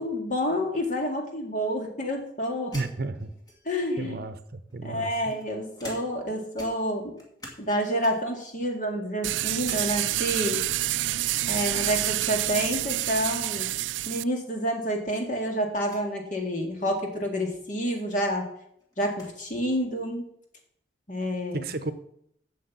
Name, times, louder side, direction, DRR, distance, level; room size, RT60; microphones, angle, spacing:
voice 1, 0.0-2.7 3.7-4.2 4.8-7.1 7.6-10.7 11.5-13.7 14.1-18.5 19.0-20.2 21.1-21.6, equal, 40° left, 2 dB, 2.1 m, -29 dB
sound 1, 2.7-3.9 4.7-6.3 6.6-7.7 8.0-8.4 8.9-9.9 10.2-10.3 11.1-11.3 12.8-13.1 13.4-13.5 13.6-13.8 14.6-14.7 15.8-16.1 17.8-17.9 18.2-19.4, left 1 dB, 20° left, 2.1 m, -46 dB
voice 2, 2.7-3.3 4.0-5.1 21.5-21.9, right 3 dB, 55° right, 11 dB, 0.8 m, -32 dB
sound 2, 9.2-14.2, right 16 dB, 85° right, 0.3 m, -28 dB
8.0 x 6.7 x 8.2 m, 0.72 s
head